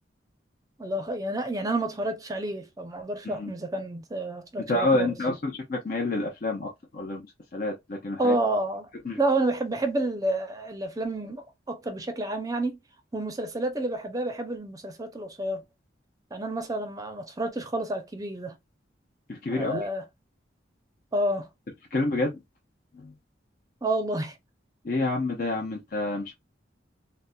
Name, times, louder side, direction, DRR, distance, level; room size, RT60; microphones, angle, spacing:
voice 1, 0.8-5.1 8.2-8.9 9.2-12.8 13.1-15.6 16.3-18.6 19.5-20.0 21.1-21.5 23.8-24.3, right 1 dB, 20° right, 0.5 m, -29 dB
voice 2, 4.7-7.2 7.5-8.4 9.0-9.2 19.3-19.9 21.9-22.4 22.9-23.1 24.8-26.3, left 2 dB, 50° left, 0.6 m, -28 dB
4.0 x 2.1 x 2.2 m
head